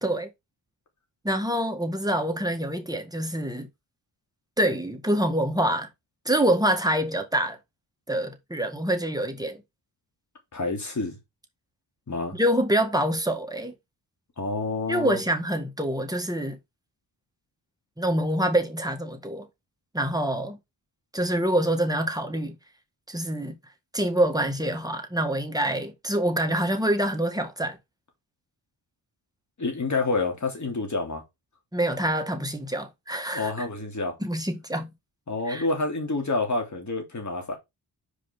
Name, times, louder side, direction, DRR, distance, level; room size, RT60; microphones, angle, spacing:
voice 1, 1.2-3.7 4.6-5.9 6.2-7.6 8.1-9.6 12.3-13.7 14.9-16.6 18.0-19.5 19.9-20.6 21.1-22.6 23.1-23.6 23.9-27.8 31.7-33.7 34.2-34.9 35.5-35.7, right 1 dB, 10° right, 1.8 m, -26 dB
voice 2, 10.5-11.2 12.1-12.4 14.4-15.2 29.6-31.2 33.3-34.2 35.3-37.5, left 3 dB, 40° left, 3.2 m, -28 dB
5.3 x 5.0 x 5.2 m
cardioid pair, 75°, 43 cm